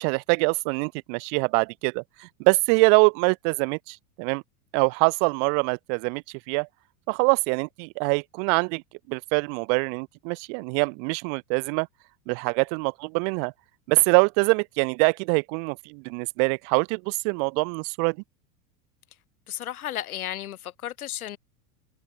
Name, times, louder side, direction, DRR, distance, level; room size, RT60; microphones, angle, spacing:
voice 1, 0.0-4.4 4.7-6.7 7.1-8.8 9.1-11.9 12.3-13.5 13.9-18.2, right 40 dB or more, 55° right, 1.0 m, -24 dB
voice 2, 19.5-21.4, left 12 dB, 90° left, 1.9 m, -33 dB
hypercardioid pair, 110°, 42 cm